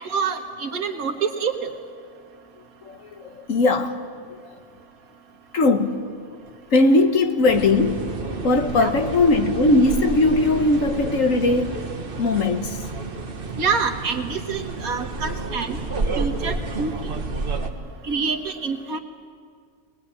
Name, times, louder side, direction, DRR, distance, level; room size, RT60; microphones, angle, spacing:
voice 1, 0.1-1.7 8.8-8.9 13.6-15.8 16.2-16.9 18.1-19.0, right 5 dB, 90° right, 2.0 m, -26 dB
voice 2, 2.8-4.0 4.3-4.5 5.5-6.1 6.7-8.1 8.4-11.8 12.2-12.9, left 2 dB, 65° left, 1.6 m, -19 dB
sound 1, 7.5-17.7, right 3 dB, 40° right, 1.6 m, -30 dB
21.0 x 20.0 x 9.9 m
omnidirectional pair, 1.5 m